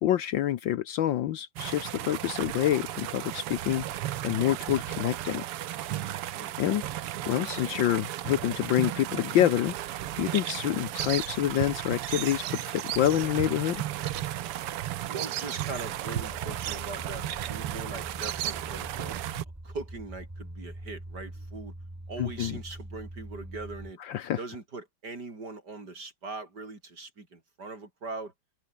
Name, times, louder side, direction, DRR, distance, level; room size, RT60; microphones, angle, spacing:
voice 1, 0.0-3.8 4.2-5.4 6.6-6.9 7.3-9.7 10.2-13.8 22.2-22.6 24.1-24.4, left 12 dB, 65° left, 1.4 m, -27 dB
sound 1, 1.6-19.4, right 13 dB, 85° right, 1.9 m, -35 dB
voice 2, 6.0-6.5 15.1-19.2 19.6-21.7 22.1-24.0 24.4-28.3, right 3 dB, 45° right, 4.8 m, -41 dB
Bird vocalization bird call bird song, 9.9-19.1, right 12 dB, 65° right, 1.5 m, -38 dB
sound 2, 16.1-23.9, right 1 dB, 10° right, 1.8 m, -43 dB
open air
omnidirectional pair, 2.4 m